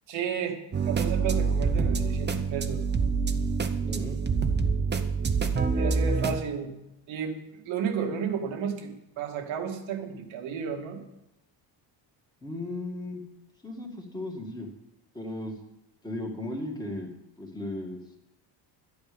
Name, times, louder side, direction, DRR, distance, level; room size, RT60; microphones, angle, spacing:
voice 1, 0.1-2.8 5.7-6.7 7.1-11.0, right 6 dB, 85° right, 3 dB, 2.1 m, -32 dB
sound 1, 0.7-6.4, right 5 dB, 25° right, 0.8 m, -26 dB
voice 2, 3.8-4.2 12.4-13.2 13.6-14.7 15.1-15.5 16.0-17.1 17.4-18.2, left 1 dB, 10° left, 1 dB, 2.1 m, -36 dB
12.0 x 10.5 x 5.2 m, 0.89 s
cardioid pair, 155°, 46 cm